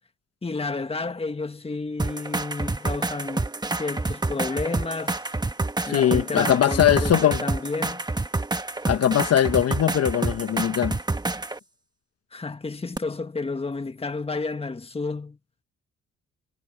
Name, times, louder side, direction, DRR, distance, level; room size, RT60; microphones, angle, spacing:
voice 1, 0.4-5.2 5.9-8.0 12.3-15.4, left 3 dB, 20° left, 1.6 m, -31 dB
sound 1, 2.0-11.6 13.0-13.1, right 2 dB, 15° right, 1.3 m, -28 dB
voice 2, 5.9-7.4 8.9-11.0, left 10 dB, 55° left, 1.1 m, -21 dB
cardioid pair, 90°, 30 cm